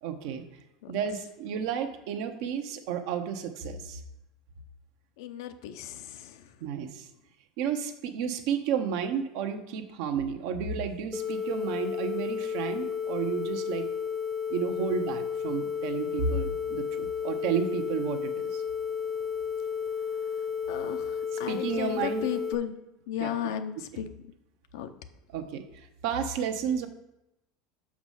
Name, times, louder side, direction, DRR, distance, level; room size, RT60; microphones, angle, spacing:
voice 1, 0.0-0.4 0.9-4.0 6.6-7.1 7.6-13.9 14.5-18.6 21.5-22.3 23.2-23.3 23.9-24.0 25.3-26.9, right 7 dB, 70° right, 7 dB, 0.9 m, -32 dB
voice 2, 5.2-6.5 14.9-15.0 20.7-22.7 23.1-24.1 24.7-24.9, left 10 dB, 80° left, 9 dB, 0.6 m, -35 dB
sound 1, 11.1-22.5, left 7 dB, ahead, 0.7 m, -32 dB
6.3 x 4.8 x 5.6 m, 0.87 s
supercardioid pair, 135°, 2 cm